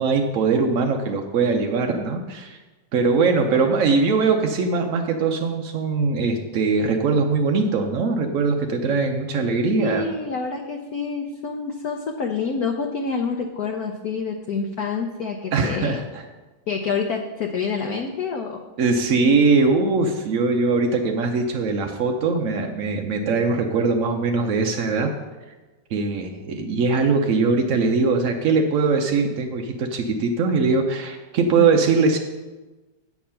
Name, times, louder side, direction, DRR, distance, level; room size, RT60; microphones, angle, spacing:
voice 1, 0.0-2.6 2.9-10.1 15.5-16.2 18.8-25.1 25.9-32.2, right 4 dB, 65° right, 3 dB, 0.8 m, -21 dB
voice 2, 9.8-16.0 16.7-18.6 31.6-31.7, left 5 dB, 60° left, 3 dB, 1.0 m, -27 dB
8.4 x 7.0 x 5.7 m, 1.2 s
omnidirectional pair, 2.2 m